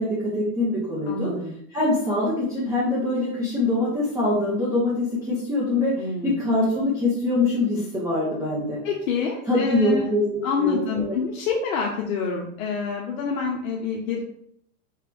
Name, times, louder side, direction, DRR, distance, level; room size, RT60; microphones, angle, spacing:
voice 1, 0.0-1.3 1.7-8.8 9.5-11.2, left 2 dB, 10° right, -8 dB, 0.8 m, -24 dB
voice 2, 1.1-1.5 6.0-6.3 8.8-10.1 10.4-14.2, left 5 dB, 70° left, -1 dB, 0.9 m, -27 dB
4.5 x 3.3 x 3.4 m, 0.71 s
supercardioid pair, 145°, 42 cm